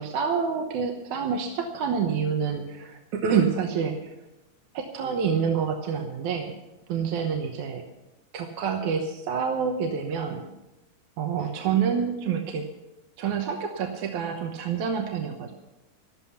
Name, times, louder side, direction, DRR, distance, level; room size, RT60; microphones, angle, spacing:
voice 1, 0.0-4.2 4.7-6.6 6.9-7.8 8.3-10.4 11.2-12.7 13.2-15.5, right 6 dB, 70° right, 3 dB, 2.3 m, -27 dB
14.0 x 13.0 x 5.7 m, 0.98 s
omnidirectional pair, 3.9 m